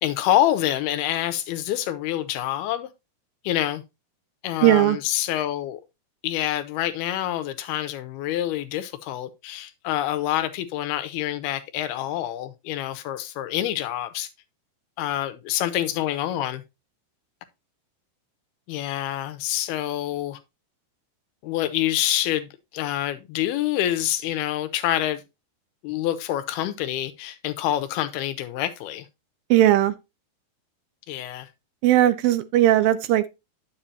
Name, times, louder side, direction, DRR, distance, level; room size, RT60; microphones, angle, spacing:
voice 1, 0.0-2.9 3.4-3.8 4.4-5.8 6.2-14.3 15.0-16.6 18.7-20.4 21.4-25.2 25.8-29.1 31.1-31.5, left 12 dB, 90° left, 2.8 m, -26 dB
voice 2, 4.6-5.0 29.5-29.9 31.8-33.3, right 13 dB, 80° right, 2.3 m, -18 dB
10.0 x 7.5 x 2.8 m
omnidirectional pair, 4.4 m